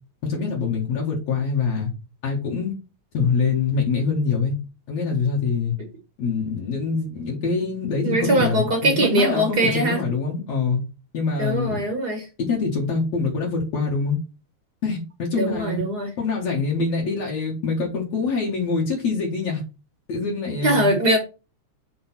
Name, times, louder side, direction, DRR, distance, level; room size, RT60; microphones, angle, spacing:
voice 1, 0.2-1.9 2.2-2.8 3.1-4.6 4.9-5.7 6.2-10.8 11.1-11.9 12.4-14.2 14.8-15.8 16.2-19.6 20.1-20.9, left 4 dB, 60° left, -2 dB, 2.7 m, -24 dB
voice 2, 8.0-10.0 11.4-12.3 15.3-16.1 20.6-21.2, right 1 dB, 45° right, 3 dB, 1.3 m, -21 dB
6.3 x 3.4 x 5.9 m, 0.30 s
omnidirectional pair, 3.4 m